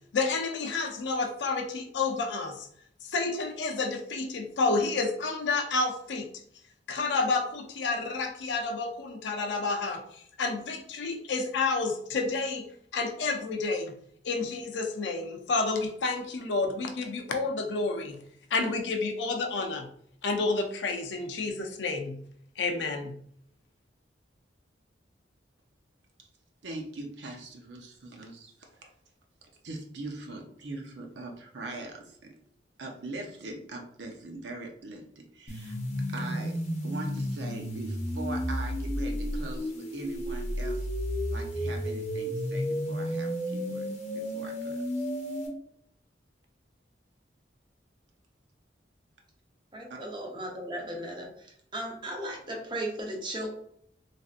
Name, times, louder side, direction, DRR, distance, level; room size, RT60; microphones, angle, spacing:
voice 1, 0.1-2.7 3.0-6.3 6.9-12.6 12.9-14.0 14.2-18.2 18.5-19.9 20.2-22.2 22.6-23.2, left 3 dB, 85° left, 4 dB, 0.5 m, -30 dB
voice 2, 26.6-28.9 29.6-32.2 32.8-35.8 36.1-36.6 36.8-40.9 41.3-43.9 44.1-45.1 49.9-50.0, right 2 dB, 85° right, 2 dB, 0.6 m, -41 dB
sound 1, 35.5-45.5, equal, 40° left, 0.7 m, -32 dB
voice 3, 49.7-51.3 51.7-53.5, right 1 dB, 25° right, 0 dB, 0.7 m, -36 dB
3.2 x 2.6 x 2.4 m, 0.66 s
head